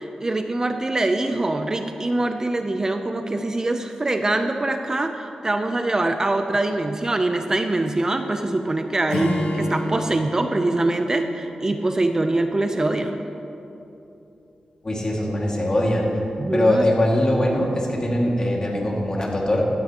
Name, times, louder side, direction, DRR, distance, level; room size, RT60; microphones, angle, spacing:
voice 1, 0.0-13.2 16.4-16.9, right 2 dB, 25° right, 6 dB, 0.5 m, -24 dB
Acoustic guitar / Strum, 9.1-12.6, left 1 dB, 75° left, 2.2 m, -29 dB
voice 2, 14.8-16.2 16.5-19.7, left 1 dB, 35° left, -2 dB, 2.1 m, -21 dB
15.5 x 12.5 x 2.9 m, 2.9 s
wide cardioid pair, 95°, 2 cm